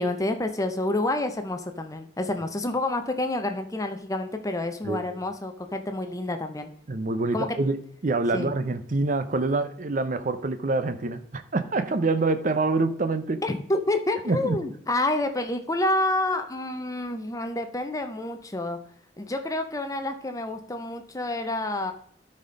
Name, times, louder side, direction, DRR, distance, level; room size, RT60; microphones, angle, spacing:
voice 1, 0.0-6.7 7.3-7.5 8.3-8.5 13.4-18.8 19.2-21.9, left 2 dB, 20° left, 0.7 m, -28 dB
voice 2, 6.9-7.8 8.0-13.4 14.3-14.6, right 3 dB, 45° right, 0.6 m, -26 dB
13.0 x 4.3 x 5.1 m
head